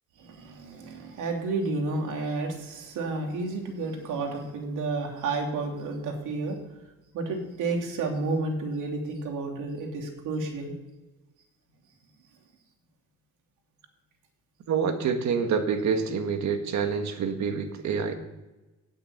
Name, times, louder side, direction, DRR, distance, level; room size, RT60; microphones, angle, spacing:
voice 1, 0.2-6.6 7.1-10.7, right 3 dB, 85° right, 2 dB, 3.1 m, -31 dB
voice 2, 14.7-18.1, right 6 dB, 65° right, 6 dB, 1.8 m, -27 dB
9.5 x 8.4 x 8.8 m, 1.1 s
cardioid pair, 90°, 30 cm